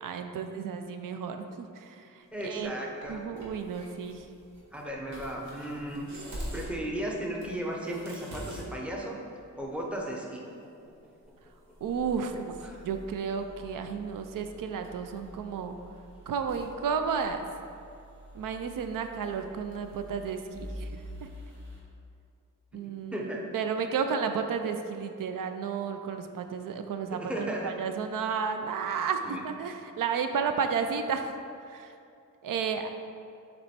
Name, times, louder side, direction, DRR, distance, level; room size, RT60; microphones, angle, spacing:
voice 1, 0.0-2.7 3.1-4.3 11.8-15.8 16.3-17.5 18.3-21.3 22.7-23.3 23.5-31.3 31.6-31.9 32.4-32.9, right 6 dB, 85° right, 7 dB, 0.5 m, -32 dB
voice 2, 2.3-3.2 4.7-6.1 6.5-9.2 9.5-10.5 12.6-12.8 22.7-23.4 27.1-27.7 29.2-29.4, right 1 dB, 5° right, -2 dB, 0.7 m, -35 dB
sound 1, 2.3-2.6 3.0-6.8 7.1-7.2 7.4-8.7 9.0-9.1 9.5-10.6 10.9-11.0 11.2-21.8, equal, 60° right, 1.3 m, -45 dB
7.5 x 3.1 x 4.2 m, 2.5 s
wide cardioid pair, 145°, 32 cm